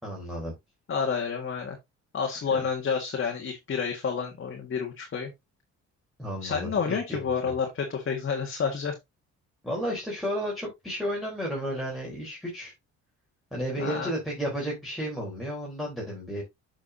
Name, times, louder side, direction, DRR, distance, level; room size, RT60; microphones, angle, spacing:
voice 1, 0.0-0.5 2.5-2.6 6.2-7.5 9.6-12.7 13.5-16.4, equal, ahead, 4.0 m, -33 dB
voice 2, 0.9-1.8 2.1-5.3 6.4-8.9 13.8-14.1, left 6 dB, 45° left, 1.8 m, -29 dB
8.3 x 6.0 x 2.8 m
cardioid pair, 90°, 30 cm